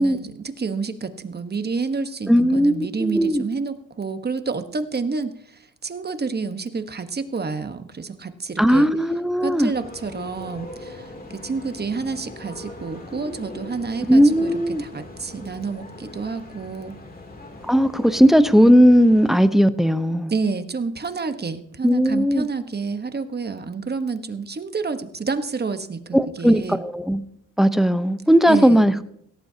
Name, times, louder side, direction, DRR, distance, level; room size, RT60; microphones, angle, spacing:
voice 1, 0.0-5.4 5.8-8.9 9.4-14.5 14.8-16.9 20.3-26.8 28.5-28.9, right 4 dB, 30° right, 9 dB, 1.2 m, -29 dB
voice 2, 2.3-3.4 8.6-9.7 14.1-14.8 17.7-20.3 21.8-22.5 26.1-27.2 27.6-29.0, equal, ahead, 11 dB, 0.8 m, -17 dB
sound 1, 9.7-19.5, left 2 dB, 25° left, 2.9 m, -40 dB
17.5 x 17.0 x 2.8 m, 0.72 s
cardioid pair, 90°, 33 cm